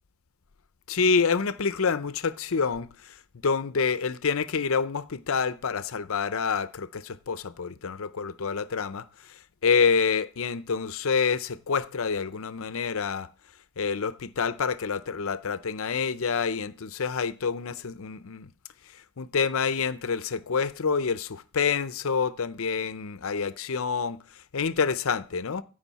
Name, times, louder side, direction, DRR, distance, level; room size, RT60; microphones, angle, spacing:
voice 1, 0.9-3.1 3.4-13.3 13.8-18.5 19.2-24.2 24.5-25.6, left 5 dB, 65° left, 0.6 m, -27 dB
14.5 x 5.2 x 4.1 m
head